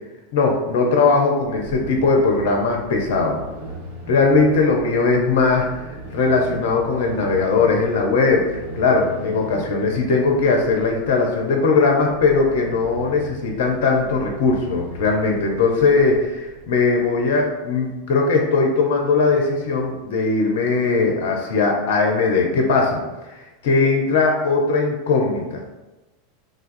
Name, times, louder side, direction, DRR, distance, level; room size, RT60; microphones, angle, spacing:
voice 1, 0.3-3.4 4.1-5.8 6.1-23.0 23.6-25.8, left 4 dB, 65° left, 2 dB, 0.4 m, -19 dB
sound 1, 1.4-17.4, right 1 dB, 65° right, 1.2 m, -39 dB
3.4 x 2.3 x 2.5 m, 1.1 s
hypercardioid pair, 90°, 0 cm